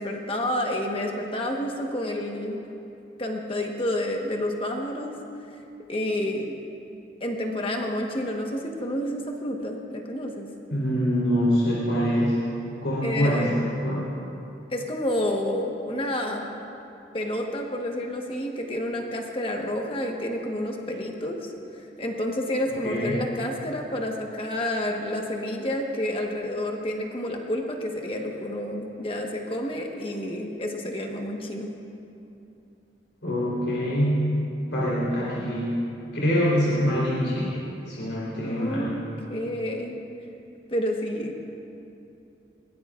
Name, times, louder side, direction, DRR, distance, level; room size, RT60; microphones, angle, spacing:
voice 1, 0.0-2.6 3.2-5.2 5.9-6.6 7.2-10.5 13.0-13.7 14.7-16.5 17.1-21.5 22.0-31.7 38.4-40.0 40.7-41.4, left 1 dB, 30° left, 1 dB, 1.2 m, -29 dB
voice 2, 10.7-12.4 12.8-13.5 13.8-14.0 22.8-23.1 33.2-34.3 34.7-35.8 36.1-37.6 37.9-38.9, equal, 85° left, -8 dB, 3.8 m, -24 dB
22.0 x 18.0 x 2.5 m, 2.8 s
head